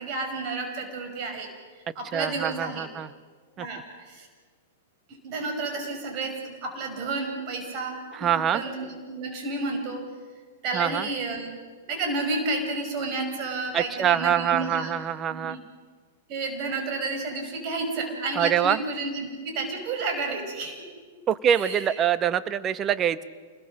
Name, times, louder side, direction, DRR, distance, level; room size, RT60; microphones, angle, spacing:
voice 1, 0.0-1.5 2.0-2.8 3.6-4.3 5.2-10.1 10.6-11.6 11.9-14.9 15.3-15.6 16.3-20.8 21.5-21.9, right 3 dB, 45° right, 4 dB, 5.7 m, -31 dB
voice 2, 2.1-3.1 3.6-3.7 8.1-8.6 10.7-11.1 13.7-15.6 18.3-18.8 21.3-23.2, right 9 dB, 30° right, 14 dB, 1.0 m, -24 dB
26.5 x 20.5 x 6.5 m, 1.6 s
hypercardioid pair, 110°, 0 cm